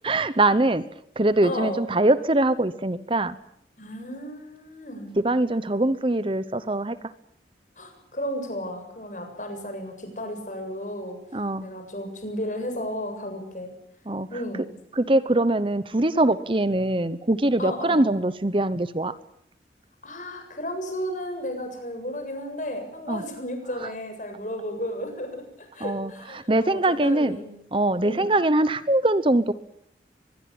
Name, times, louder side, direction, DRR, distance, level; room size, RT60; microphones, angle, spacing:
voice 1, 0.0-0.8 1.2-3.4 5.2-7.1 11.3-11.7 14.1-14.3 14.9-19.1 23.1-23.2 23.8-23.9 25.8-27.4 27.7-29.5, right 2 dB, 30° right, 14 dB, 0.9 m, -22 dB
voice 2, 1.4-1.8 3.8-5.2 7.8-11.2 11.6-13.7 14.3-14.7 17.6-18.2 20.0-27.5 28.0-28.3, equal, 45° left, 5 dB, 7.5 m, -33 dB
24.0 x 21.5 x 8.8 m, 0.73 s
head